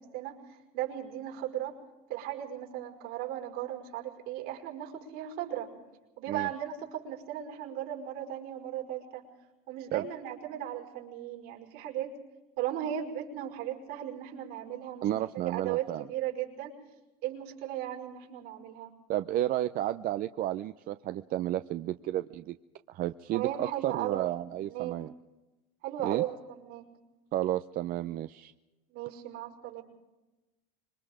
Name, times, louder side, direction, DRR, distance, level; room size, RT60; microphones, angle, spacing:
voice 1, 0.0-1.8 2.1-5.7 6.2-9.2 9.7-12.1 12.6-15.1 15.4-16.7 17.2-18.9 23.3-24.4 24.6-25.0 25.8-26.9 28.9-29.8, right 11 dB, 75° right, 2 dB, 5.5 m, -36 dB
voice 2, 15.0-16.1 19.1-22.6 22.9-25.1 26.0-26.2 27.3-28.5, right 13 dB, 50° right, 10 dB, 0.7 m, -32 dB
26.0 x 23.0 x 5.0 m, 1.1 s
supercardioid pair, 110°, 19 cm